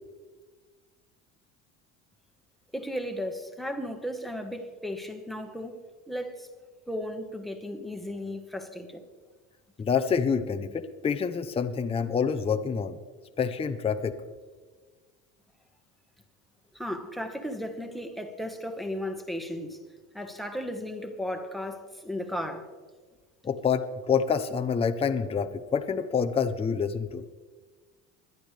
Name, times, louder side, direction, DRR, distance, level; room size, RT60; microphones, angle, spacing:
voice 1, 2.7-5.8 6.1-6.5 6.9-9.0 16.7-19.8 20.1-22.7, left 1 dB, ahead, 4 dB, 1.3 m, -35 dB
voice 2, 9.8-13.0 13.4-14.2 23.4-27.2, left 6 dB, 15° left, 8 dB, 0.7 m, -27 dB
21.5 x 10.5 x 3.3 m, 1.4 s
supercardioid pair, 110°, 34 cm